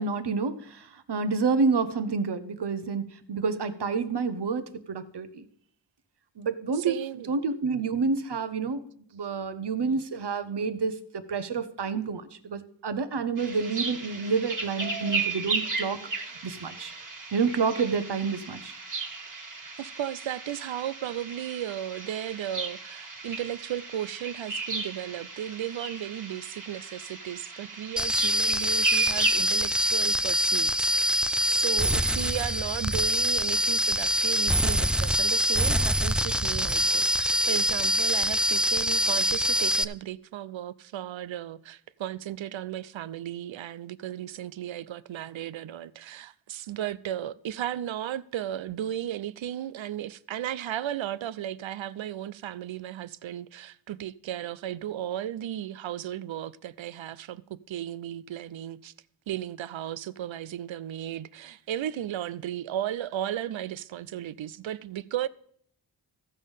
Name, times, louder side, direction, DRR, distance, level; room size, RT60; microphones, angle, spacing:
voice 1, 0.0-5.5 6.4-7.0 7.3-8.9 9.1-16.9 17.3-18.7, right 5 dB, 60° right, 1.0 m, -29 dB
voice 2, 6.7-7.3 19.8-58.9 59.3-65.3, right 11 dB, 80° right, 0.5 m, -35 dB
sound 1, 13.4-29.3, right 4 dB, 40° right, 1.7 m, -35 dB
sound 2, 28.0-39.8, equal, ahead, 0.3 m, -25 dB
14.5 x 5.4 x 5.4 m
cardioid pair, 45°, 46 cm